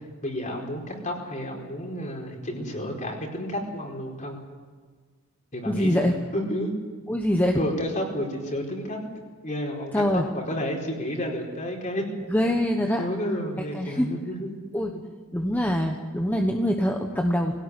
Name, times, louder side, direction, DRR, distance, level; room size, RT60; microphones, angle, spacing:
voice 1, 0.2-4.4 5.5-6.7 7.6-9.0 9.4-12.0 13.0-14.6, equal, 35° left, 0 dB, 4.7 m, -31 dB
voice 2, 5.6-6.2 7.1-7.6 9.9-10.2 12.3-13.0 13.7-14.1 14.7-14.9 15.3-17.5, equal, 10° left, 2 dB, 1.2 m, -24 dB
23.0 x 17.5 x 9.9 m, 1.5 s
head